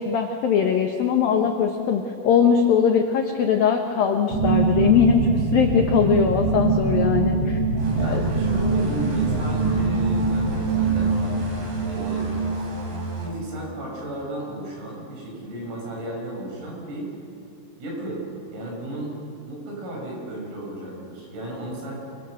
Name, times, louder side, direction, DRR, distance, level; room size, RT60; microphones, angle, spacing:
voice 1, 0.0-7.6 8.0-8.2, left 7 dB, 75° left, 3 dB, 2.1 m, -21 dB
sound 1, 4.3-13.8, right 4 dB, 60° right, 1.6 m, -24 dB
sound 2, 7.8-13.3, right 2 dB, 35° right, 4.7 m, -34 dB
voice 2, 7.9-11.4 11.8-12.7 13.2-17.1 17.8-18.3 18.5-19.1 19.5-22.0, right 1 dB, 80° right, -2 dB, 9.0 m, -34 dB
27.5 x 24.0 x 6.6 m, 2.4 s
omnidirectional pair, 5.9 m